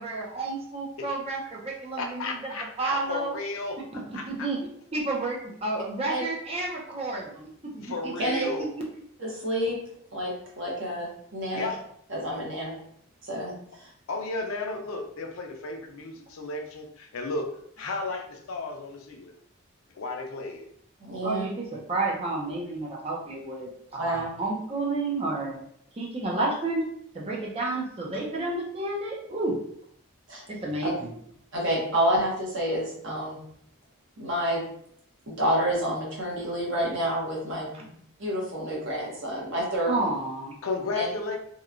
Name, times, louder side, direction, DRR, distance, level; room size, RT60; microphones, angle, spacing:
voice 1, 0.0-2.4 2.8-3.4 3.9-4.6 4.9-8.7 21.2-25.6 26.0-26.8 27.1-29.6 30.5-31.1 37.7-37.8 39.9-40.5, right 2 dB, 25° right, -2 dB, 0.5 m, -31 dB
voice 2, 2.0-4.5 7.8-8.7 11.5-11.8 14.1-17.5 17.8-19.3 20.0-20.6 40.6-41.4, left 3 dB, 75° left, 3 dB, 0.4 m, -34 dB
voice 3, 9.2-9.8 10.1-11.1 11.3-11.7 12.1-12.7 13.3-13.5 13.8-13.9 21.1-21.4 24.0-24.3 30.3-30.4 30.8-30.9 31.5-33.4 34.2-34.7 35.3-37.9 38.2-40.1 40.9-41.0, equal, 60° right, -3 dB, 0.9 m, -28 dB
2.8 x 2.2 x 2.4 m, 0.67 s
head